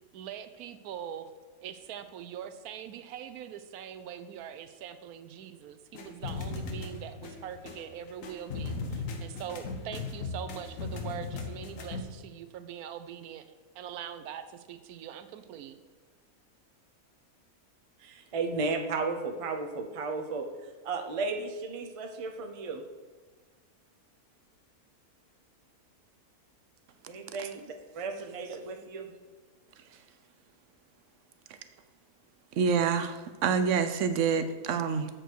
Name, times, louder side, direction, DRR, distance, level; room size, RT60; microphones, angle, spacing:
voice 1, 0.1-1.3 1.6-13.5 13.7-15.8, right 9 dB, 85° right, 11 dB, 1.1 m, -42 dB
sound 1, 5.9-12.0, left 4 dB, 65° left, 1.3 m, -37 dB
voice 2, 18.0-20.5 20.8-22.8 27.1-29.1, right 4 dB, 35° right, 4 dB, 0.5 m, -34 dB
voice 3, 32.5-35.1, right 6 dB, 65° right, 10 dB, 0.9 m, -27 dB
7.6 x 6.8 x 4.6 m, 1.4 s
omnidirectional pair, 1.6 m